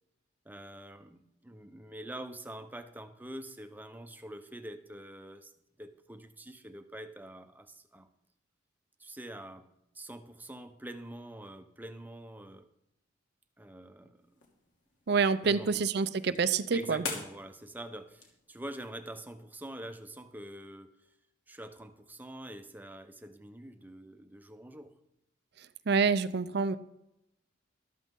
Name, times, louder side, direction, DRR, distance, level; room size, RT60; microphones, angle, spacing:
voice 1, 0.4-5.5 5.8-8.1 9.0-9.7 9.9-12.7 13.6-14.3 15.4-15.8 16.7-21.1 21.5-24.9, right 1 dB, 10° right, 7 dB, 0.8 m, -45 dB
sound 1, 14.1-19.2, left 4 dB, 70° left, 2.9 m, -46 dB
voice 2, 15.1-17.0 25.6-26.8, right 5 dB, 55° right, 13 dB, 0.5 m, -27 dB
13.5 x 12.5 x 3.8 m, 0.84 s
head